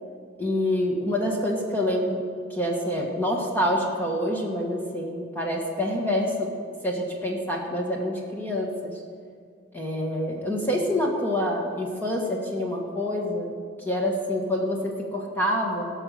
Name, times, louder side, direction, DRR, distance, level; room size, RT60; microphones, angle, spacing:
voice 1, 0.4-2.2 2.5-6.5 6.8-8.9 9.7-13.5 13.8-15.9, left 1 dB, 10° left, -1 dB, 1.5 m, -26 dB
18.0 x 6.3 x 6.8 m, 2.2 s
head